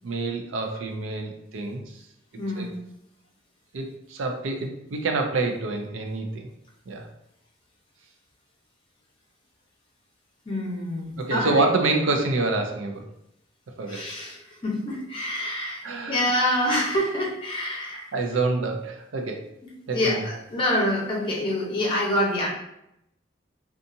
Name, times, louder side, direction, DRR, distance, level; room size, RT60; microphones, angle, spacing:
voice 1, 0.0-2.0 2.6-2.7 3.7-6.5 6.9-7.1 11.2-13.0 13.8-14.1 15.8-16.3 18.1-19.4 19.9-20.2, right 3 dB, 80° right, 4 dB, 0.5 m, -27 dB
voice 2, 2.4-2.8 10.4-11.7 13.9-15.8 16.1-18.1 19.9-22.5, left 1 dB, 25° left, -4 dB, 0.9 m, -26 dB
2.7 x 2.4 x 2.6 m, 0.79 s
head